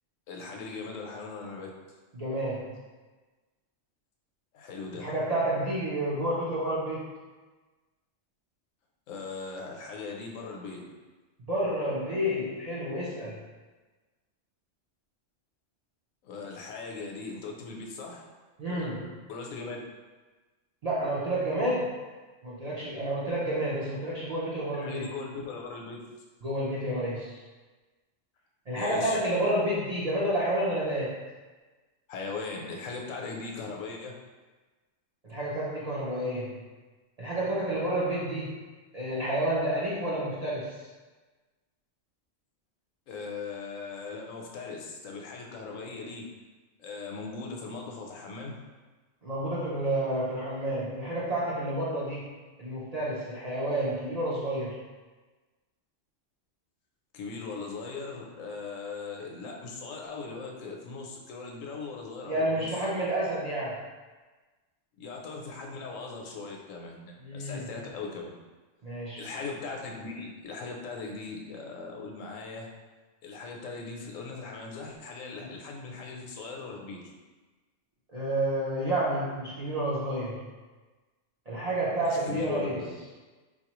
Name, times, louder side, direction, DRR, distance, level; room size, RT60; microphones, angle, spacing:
voice 1, 0.3-1.8 4.5-5.1 9.1-10.8 16.2-18.3 18.6-18.9 19.3-19.8 24.7-26.0 28.7-29.2 32.1-34.1 43.1-46.3 46.8-48.6 57.1-62.7 65.0-68.3 69.2-72.7 73.2-77.0 82.0-82.9, left 4 dB, 90° left, 0 dB, 1.0 m, -39 dB
voice 2, 2.1-2.8 5.0-7.1 11.5-13.4 18.6-19.2 20.8-21.9 22.4-25.1 26.4-27.4 28.7-31.2 35.2-36.6 37.2-38.6 38.9-40.8 49.2-54.8 62.2-63.8 67.2-67.8 68.8-69.3 75.4-75.5 78.1-80.5 81.5-82.8, right 1 dB, 55° right, -7 dB, 0.4 m, -30 dB
4.1 x 2.4 x 2.9 m, 1.3 s
omnidirectional pair, 1.3 m